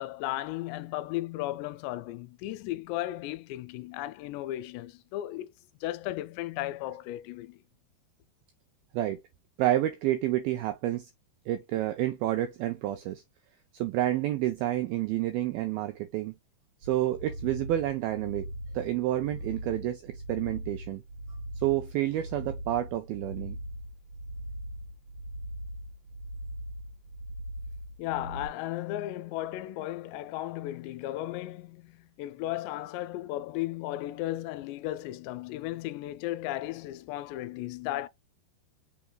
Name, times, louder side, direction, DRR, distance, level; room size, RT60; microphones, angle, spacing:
voice 1, 0.0-5.5 5.8-7.6 28.0-38.1, left 15 dB, 85° left, 2.7 m, -35 dB
voice 2, 9.6-11.1 11.5-13.2 13.7-16.3 16.8-18.5 18.7-21.0 21.6-23.6, right 14 dB, 85° right, 2.1 m, -29 dB
sound 1, 16.8-28.5, right 1 dB, 55° right, 2.2 m, -40 dB
5.8 x 3.7 x 2.2 m
omnidirectional pair, 4.9 m